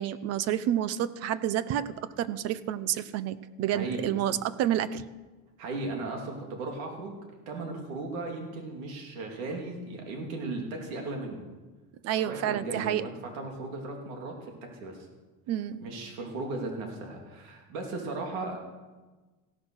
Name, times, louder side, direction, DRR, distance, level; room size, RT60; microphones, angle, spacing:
voice 1, 0.0-5.0 12.0-13.0 15.5-15.8, right 11 dB, 40° right, 16 dB, 0.6 m, -29 dB
voice 2, 3.7-4.1 5.6-7.2 7.5-11.4 12.1-14.5 14.8-15.0 15.8-18.6, right 3 dB, 85° right, 1 dB, 3.1 m, -36 dB
16.0 x 10.5 x 6.3 m, 1.2 s
cardioid pair, 160°, 39 cm